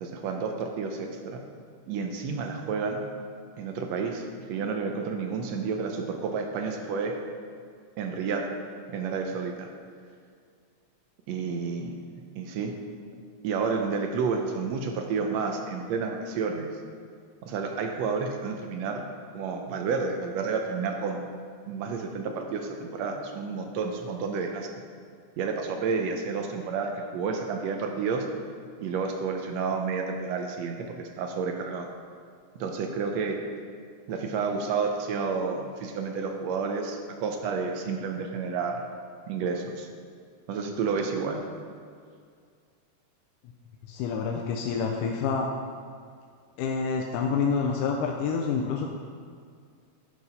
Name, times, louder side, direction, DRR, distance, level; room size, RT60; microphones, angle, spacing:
voice 1, 0.0-1.4 1.9-3.0 3.6-7.1 8.0-8.5 8.9-9.7 11.3-11.9 12.4-12.7 13.4-16.7 17.4-19.1 19.3-21.2 21.7-24.7 25.4-28.3 28.8-31.9 32.6-33.4 34.1-38.8 39.3-39.9 40.5-41.4, right 5 dB, 75° right, 3 dB, 1.7 m, -30 dB
voice 2, 43.9-45.5 46.6-48.9, left 5 dB, 90° left, 1 dB, 2.2 m, -27 dB
10.5 x 4.8 x 5.6 m, 2.2 s
omnidirectional pair, 3.5 m